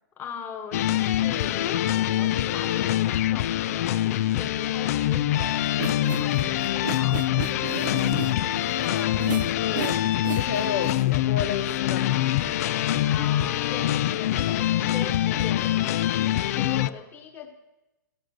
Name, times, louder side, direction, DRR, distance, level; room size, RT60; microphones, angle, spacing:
voice 1, 0.2-7.6 13.0-17.5, left 5 dB, 20° left, 4 dB, 1.6 m, -41 dB
sound 1, 0.7-16.9, left 13 dB, 50° left, 0.5 m, -24 dB
sound 2, 5.7-10.9, right 10 dB, 75° right, 0.5 m, -36 dB
voice 2, 8.5-10.0 10.3-12.4, left 7 dB, 65° left, 7 dB, 1.1 m, -32 dB
14.5 x 11.5 x 6.4 m, 1.0 s
hypercardioid pair, 145°, 10 cm